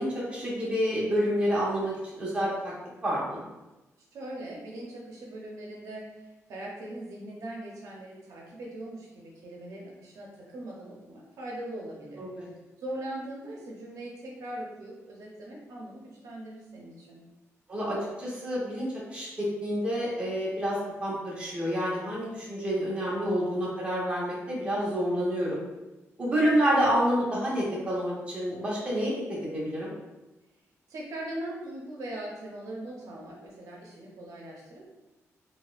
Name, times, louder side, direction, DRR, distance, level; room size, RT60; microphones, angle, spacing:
voice 1, 0.0-2.7 3.0-3.5 12.2-12.4 17.7-25.6 26.2-29.1 29.5-29.9, equal, 20° right, -6 dB, 1.0 m, -28 dB
voice 2, 4.1-12.2 12.8-17.2 30.9-34.8, right 1 dB, 85° right, -3 dB, 0.7 m, -40 dB
4.0 x 2.2 x 2.5 m, 1.0 s
wide cardioid pair, 165°, 5 cm